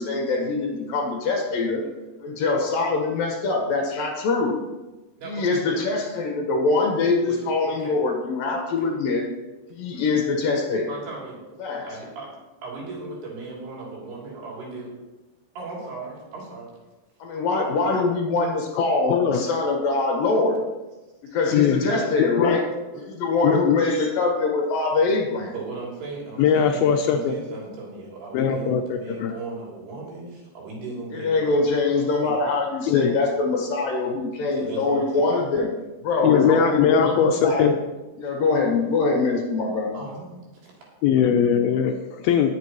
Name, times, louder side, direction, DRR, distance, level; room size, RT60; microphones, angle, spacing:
voice 1, 0.0-1.8 2.2-4.6 5.3-9.2 9.7-10.9 11.6-11.9 17.2-20.6 21.3-22.6 23.1-25.5 31.1-35.7 36.0-37.7 38.2-40.0, left 3 dB, 65° left, 1 dB, 2.8 m, -23 dB
voice 2, 5.2-5.8 7.2-7.4 7.7-8.0 10.9-11.5 11.8-12.3 12.6-15.0 15.5-16.7 21.3-21.4 21.8-22.1 22.9-23.1 25.5-32.5 34.5-35.3 39.9-40.3 40.6-40.7, right 3 dB, 75° right, -4 dB, 5.0 m, -37 dB
voice 3, 18.8-19.4 21.5-21.9 22.2-22.6 23.4-23.8 26.4-27.3 28.3-29.3 32.9-33.1 36.2-37.8 41.0-42.5, left 8 dB, 80° left, 4 dB, 2.3 m, -20 dB
18.5 x 7.6 x 3.0 m, 1.1 s
omnidirectional pair, 4.8 m